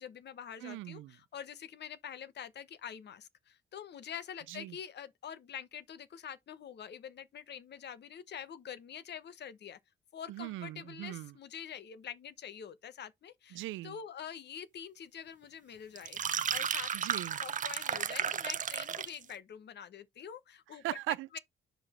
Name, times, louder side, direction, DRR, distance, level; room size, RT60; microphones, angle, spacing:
voice 1, 0.0-9.8 10.1-16.9 17.4-20.8, left 8 dB, 60° left, 1.0 m, -46 dB
voice 2, 0.6-1.1 4.5-4.8 10.3-11.3 13.5-14.0 16.9-17.4 20.8-21.4, right 17 dB, 85° right, 0.4 m, -39 dB
sound 1, 16.0-19.2, right 8 dB, 40° right, 0.7 m, -34 dB
6.3 x 5.0 x 4.3 m
cardioid pair, 90°, 20 cm